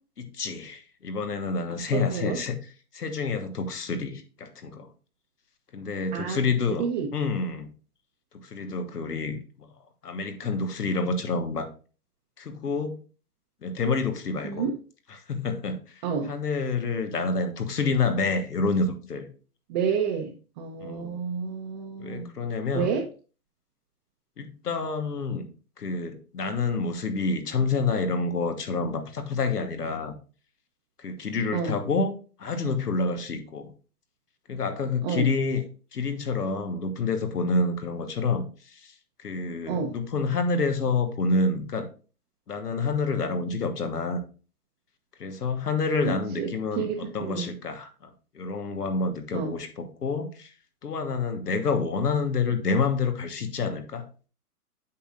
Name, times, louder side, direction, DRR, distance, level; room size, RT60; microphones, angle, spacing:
voice 1, 0.2-2.6 2.9-4.9 5.7-7.7 8.3-9.4 10.0-11.7 12.4-13.0 13.6-14.7 15.1-19.3 20.8-21.2 22.0-22.9 24.4-25.5 25.8-30.1 31.0-32.1 32.4-33.7 34.5-35.6 35.9-41.9 42.5-44.2 45.2-50.5 50.8-54.1, left 4 dB, 85° left, 8 dB, 1.4 m, -28 dB
voice 2, 6.8-7.1 14.4-14.7 16.0-16.3 19.7-22.3 22.7-23.0 31.5-31.8 35.0-35.3 39.7-39.9 46.0-46.5 46.8-47.5 49.3-49.5, right 6 dB, 30° right, 0 dB, 0.8 m, -29 dB
8.3 x 5.9 x 2.5 m, 0.36 s
hypercardioid pair, 130°, 46 cm